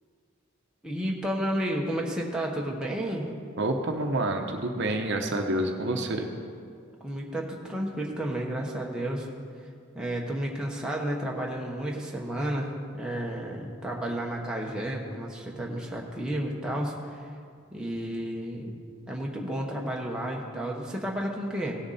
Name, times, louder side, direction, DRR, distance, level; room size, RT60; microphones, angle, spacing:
voice 1, 0.8-3.3 7.0-9.3 9.9-17.0 17.7-18.8 19.1-21.8, right 1 dB, 5° right, -2 dB, 1.0 m, -32 dB
voice 2, 3.6-6.3, right 1 dB, 55° right, 4 dB, 0.8 m, -28 dB
17.0 x 6.9 x 4.2 m, 2.2 s
head